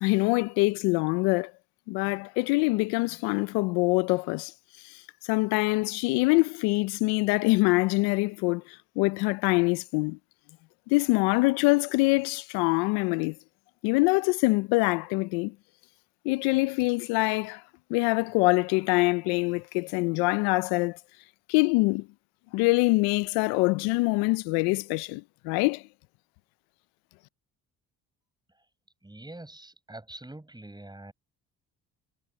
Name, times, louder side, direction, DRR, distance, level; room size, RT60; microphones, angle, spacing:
voice 1, 0.0-1.5 1.9-4.5 5.3-8.6 9.0-10.2 10.9-13.3 13.8-15.5 16.3-17.6 17.9-21.0 21.5-22.0 22.5-25.8, left 25 dB, 90° left, 0.5 m, -24 dB
voice 2, 29.0-31.1, right 1 dB, 10° right, 7.6 m, -45 dB
supercardioid pair, 70°, 37 cm